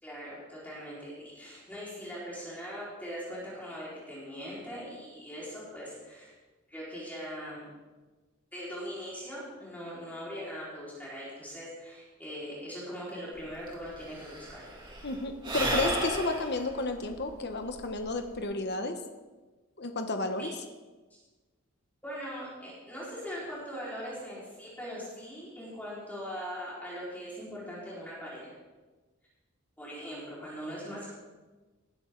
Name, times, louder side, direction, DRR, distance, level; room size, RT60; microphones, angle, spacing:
voice 1, 0.0-6.3 6.7-7.7 8.5-14.6 20.4-20.5 22.0-28.6 29.8-31.1, equal, 10° left, -8 dB, 4.8 m, -41 dB
Sigh / Breathing, 13.4-13.5 13.7-18.4, right 1 dB, 20° right, 2.9 m, -34 dB
voice 2, 15.0-18.9 19.8-20.5, left 2 dB, 50° left, 6 dB, 1.1 m, -32 dB
19.5 x 11.5 x 4.0 m, 1.3 s
head